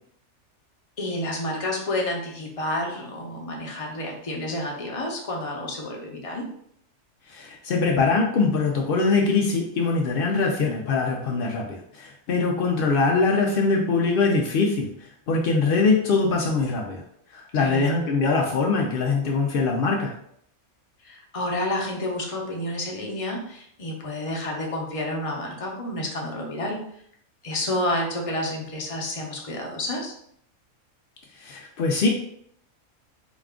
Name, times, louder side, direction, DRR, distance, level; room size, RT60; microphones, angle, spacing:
voice 1, 1.0-6.5 17.5-17.9 21.0-26.8 27.4-30.1, left 1 dB, 35° left, -1 dB, 0.6 m, -30 dB
voice 2, 7.3-14.9 15.3-17.0 17.3-20.1 31.4-32.1, left 4 dB, 85° left, 0 dB, 0.5 m, -22 dB
4.0 x 2.4 x 3.5 m, 0.69 s
omnidirectional pair, 1.5 m